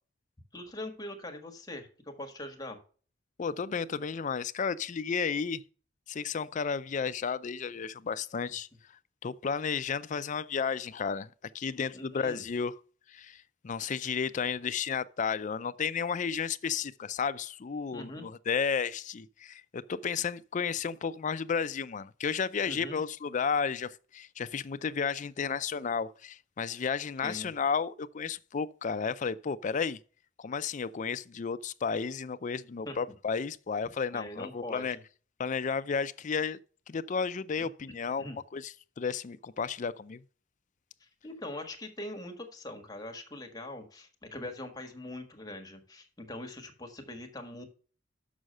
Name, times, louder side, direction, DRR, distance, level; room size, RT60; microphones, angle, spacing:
voice 1, 0.5-2.8 11.9-12.4 17.9-18.3 22.7-23.0 27.2-27.5 32.8-33.0 34.1-35.0 37.6-37.7 38.2-38.4 41.0-47.6, left 1 dB, 20° left, 1.4 m, -42 dB
voice 2, 3.4-5.6 6.1-8.7 9.2-11.3 11.5-12.7 13.1-30.0 30.4-35.0 35.4-36.6 36.9-40.2, left 6 dB, 40° left, 0.4 m, -33 dB
6.3 x 6.2 x 6.4 m
head